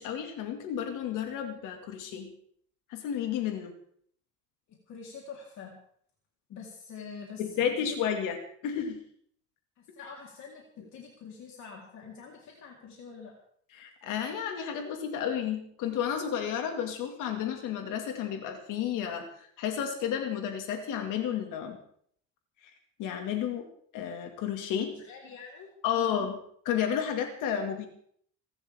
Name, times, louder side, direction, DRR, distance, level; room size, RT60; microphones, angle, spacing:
voice 1, 0.0-2.3 2.9-3.7 7.4-8.4 8.6-9.0 13.8-21.8 23.0-23.6 23.9-24.9 25.8-26.3 26.6-27.9, left 8 dB, 85° left, 4 dB, 2.3 m, -32 dB
voice 2, 4.7-5.8 6.5-8.0 9.8-13.3 24.9-26.2, left 5 dB, 65° left, -1 dB, 3.9 m, -46 dB
27.0 x 12.5 x 3.6 m, 0.63 s
cardioid pair, 120°, 31 cm